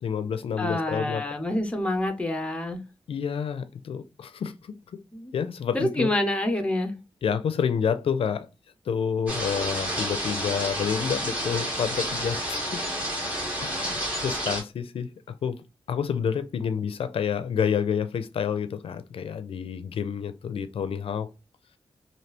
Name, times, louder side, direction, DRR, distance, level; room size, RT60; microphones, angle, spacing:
voice 1, 0.0-1.3 3.1-5.0 5.3-6.1 7.2-8.5 8.9-12.9 13.6-15.6 15.9-21.3, left 7 dB, 90° left, 0.4 m, -29 dB
voice 2, 0.6-2.8 5.1-5.3 5.7-6.9, left 1 dB, 10° left, 0.6 m, -27 dB
sound 1, 9.3-14.6, equal, 15° right, 1.6 m, -30 dB
3.3 x 2.6 x 2.8 m
wide cardioid pair, 175°, 9 cm